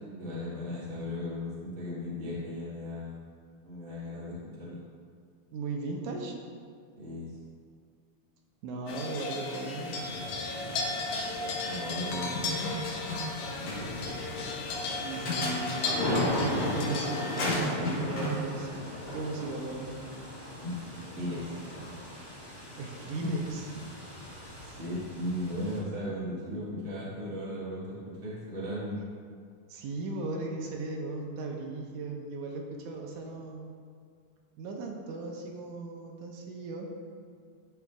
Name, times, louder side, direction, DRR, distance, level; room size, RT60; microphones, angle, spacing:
voice 1, 0.2-3.2 3.6-4.8 7.0-7.3 11.6-12.5 20.6-21.5 23.2-23.3 24.6-27.9 28.2-29.0, left 1 dB, 30° right, -9 dB, 1.4 m, -36 dB
voice 2, 5.5-6.4 8.6-10.2 12.0-12.5 15.0-15.9 16.2-20.0 22.8-23.6 29.7-33.7 34.6-37.0, right 3 dB, 80° right, 0 dB, 2.3 m, -37 dB
sound 1, 8.9-17.6, left 3 dB, 80° left, 1.3 m, -35 dB
sound 2, 9.8-25.8, left 1 dB, 30° left, 0.4 m, -38 dB
sound 3, 12.3-13.4 13.7-13.8 14.9-16.0 17.4-18.4, left 1 dB, 65° left, 2.5 m, -33 dB
11.5 x 5.8 x 2.4 m, 2.1 s
omnidirectional pair, 3.6 m